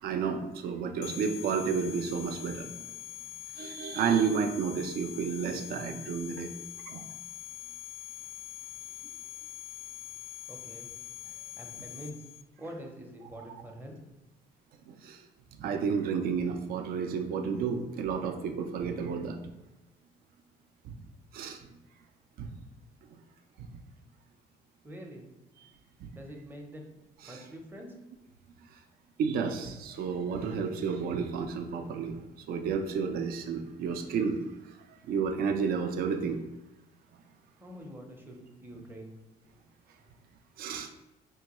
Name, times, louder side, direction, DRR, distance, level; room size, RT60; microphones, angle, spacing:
voice 1, 0.0-2.7 3.6-6.5 6.9-7.0 13.5-13.6 14.9-15.2 15.6-19.4 20.8-21.0 21.3-21.6 22.4-22.5 23.6-23.7 26.0-26.2 27.2-27.4 29.2-36.4 40.6-40.9, right 6 dB, 60° right, 5 dB, 0.4 m, -31 dB
sound 1, 1.0-12.4, left 12 dB, 55° left, 0.4 m, -44 dB
voice 2, 10.5-10.9 11.6-12.3 12.6-13.9 24.8-25.3 26.1-26.9 27.3-27.9 37.6-39.1, equal, 10° right, 1 dB, 0.6 m, -45 dB
4.3 x 2.2 x 2.9 m, 0.97 s
cardioid pair, 110°, 17 cm